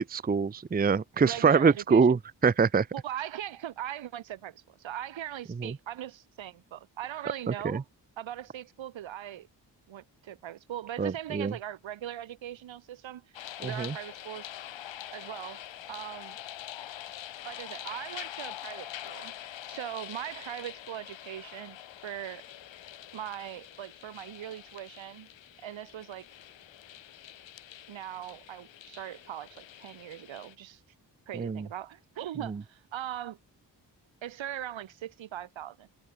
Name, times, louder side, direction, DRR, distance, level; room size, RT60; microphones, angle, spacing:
voice 1, 0.0-2.9 5.6-5.8 7.5-7.8 11.0-11.5 13.6-14.0 31.3-31.7 32.5-32.6, right 5 dB, 20° right, 0.6 m, -25 dB
voice 2, 1.2-2.1 2.9-7.8 8.2-9.5 9.9-13.2 13.6-14.5 15.1-16.4 17.4-19.3 19.7-22.4 23.1-25.3 25.6-26.2 27.9-30.8 31.3-33.4 34.2-35.9, right 11 dB, 85° right, 4.7 m, -40 dB
sound 1, 13.3-30.5, left 12 dB, 75° left, 1.4 m, -45 dB
supercardioid pair, 40°, 45 cm